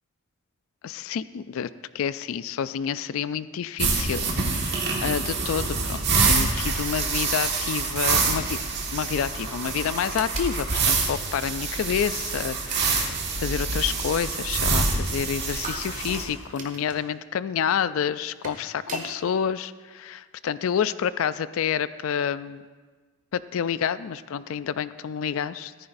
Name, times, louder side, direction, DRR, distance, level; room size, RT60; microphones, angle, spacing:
voice 1, 0.8-1.7 1.9-8.6 8.9-22.6 23.3-25.7, left 8 dB, 65° left, 15 dB, 0.3 m, -29 dB
sound 1, 3.8-16.2, right 4 dB, 50° right, 1.7 m, -26 dB
sound 2, 10.1-10.5 12.7-13.2 15.6-17.0 18.2-19.1, right 3 dB, 35° right, 1.3 m, -38 dB
14.5 x 14.0 x 2.6 m, 1.4 s
head